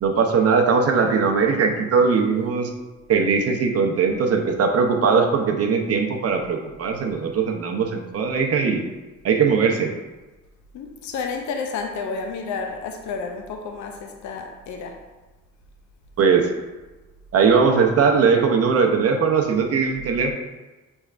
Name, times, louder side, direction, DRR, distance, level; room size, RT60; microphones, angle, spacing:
voice 1, 0.0-2.7 3.1-8.8 9.2-9.9 16.2-16.5 17.3-20.3, right 5 dB, 55° right, 3 dB, 0.6 m, -20 dB
voice 2, 10.7-15.0, left 4 dB, 70° left, 4 dB, 0.5 m, -31 dB
6.2 x 3.2 x 2.4 m, 1.2 s
cardioid pair, 90°, 30 cm